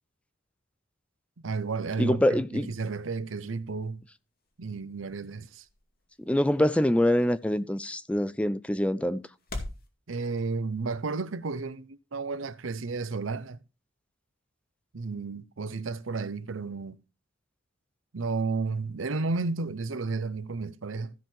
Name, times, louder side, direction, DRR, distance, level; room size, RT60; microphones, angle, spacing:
voice 1, 1.4-2.2 2.5-4.0 4.6-5.7 10.1-13.6 14.9-17.0 18.1-21.1, right 4 dB, 90° right, 0.7 m, -32 dB
voice 2, 2.0-2.7 6.3-9.2, left 1 dB, 5° left, 0.4 m, -25 dB
sound 1, 3.6-9.9, left 2 dB, 50° left, 2.3 m, -46 dB
14.5 x 5.6 x 4.5 m
head